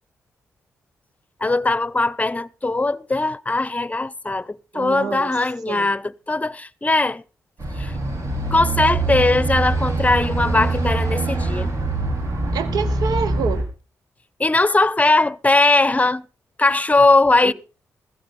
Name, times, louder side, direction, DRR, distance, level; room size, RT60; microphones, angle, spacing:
voice 1, 1.4-7.2 7.8-7.9 8.5-11.7 14.4-16.2 16.6-17.5, left 2 dB, 20° left, 0.7 m, -19 dB
voice 2, 4.7-5.3 5.7-5.9 12.5-13.7 17.4-17.5, right 6 dB, 75° right, 1.3 m, -27 dB
sound 1, 7.6-13.6, right 3 dB, 55° right, 4.9 m, -23 dB
15.5 x 14.0 x 4.2 m
hypercardioid pair, 45°, 7 cm